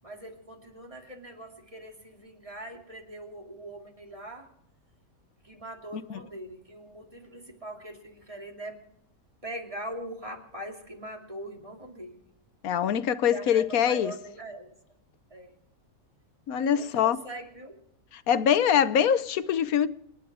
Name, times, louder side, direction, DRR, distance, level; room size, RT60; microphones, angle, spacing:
voice 1, 0.0-4.5 5.4-8.8 9.4-12.3 13.3-14.7 15.3-15.5 16.7-17.8, right 1 dB, 20° right, 2.9 m, -42 dB
voice 2, 12.6-14.1 16.5-17.2 18.1-19.9, left 8 dB, 70° left, 1.3 m, -24 dB
28.0 x 10.5 x 4.9 m
omnidirectional pair, 1.6 m